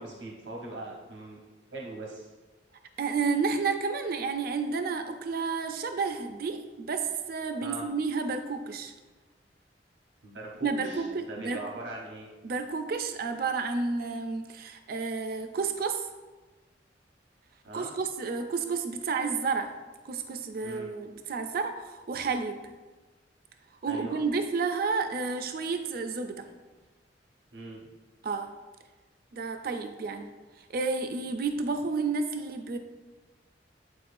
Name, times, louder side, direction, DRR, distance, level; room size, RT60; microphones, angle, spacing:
voice 1, 0.0-1.4 1.7-2.3 7.6-7.8 10.2-12.3 17.6-17.9 20.6-20.9 23.9-24.2 27.5-27.9, right 2 dB, 80° right, -2 dB, 0.9 m, -40 dB
voice 2, 3.0-8.9 10.6-11.6 12.4-16.1 17.7-19.7 20.0-22.6 23.8-26.5 28.2-28.5 29.3-30.3 30.7-32.8, right 4 dB, 55° right, 7 dB, 0.4 m, -31 dB
8.5 x 4.6 x 2.5 m, 1.2 s
head